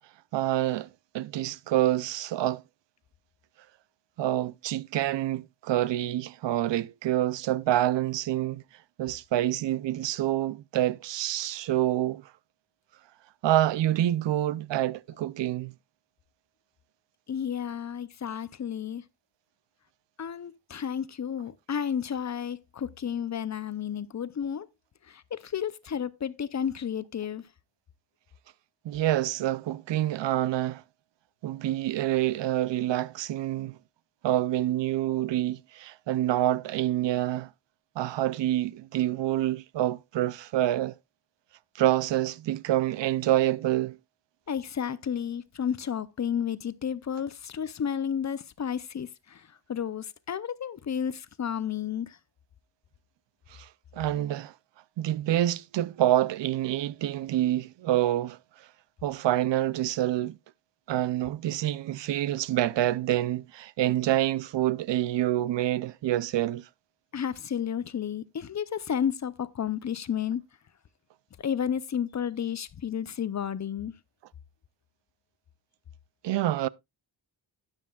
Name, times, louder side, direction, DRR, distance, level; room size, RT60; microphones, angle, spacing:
voice 1, 0.3-0.9 1.1-2.6 4.2-8.6 9.0-12.3 13.4-15.7 28.8-30.8 31.4-33.8 34.2-37.5 38.0-40.9 41.8-44.0 53.5-54.5 55.0-58.4 59.0-60.4 60.9-66.7 76.2-76.7, right 13 dB, 70° right, 0.5 m, -27 dB
voice 2, 17.3-19.0 20.2-24.7 25.1-27.5 44.5-52.2 67.1-70.4 71.4-73.9, left 8 dB, 40° left, 0.5 m, -32 dB
12.5 x 9.8 x 2.3 m
wide cardioid pair, 155°, 45 cm